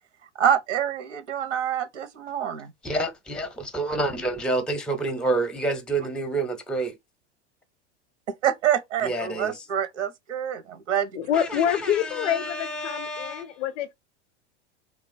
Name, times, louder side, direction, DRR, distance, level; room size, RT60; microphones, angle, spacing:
voice 1, 0.4-2.7 8.4-11.1, right 9 dB, 85° right, 0.9 m, -26 dB
voice 2, 2.8-7.0 9.0-9.7 11.3-13.6, right 2 dB, ahead, 0.6 m, -28 dB
voice 3, 11.2-13.9, left 9 dB, 85° left, 0.5 m, -26 dB
2.9 x 2.3 x 2.5 m
hypercardioid pair, 100°, 35 cm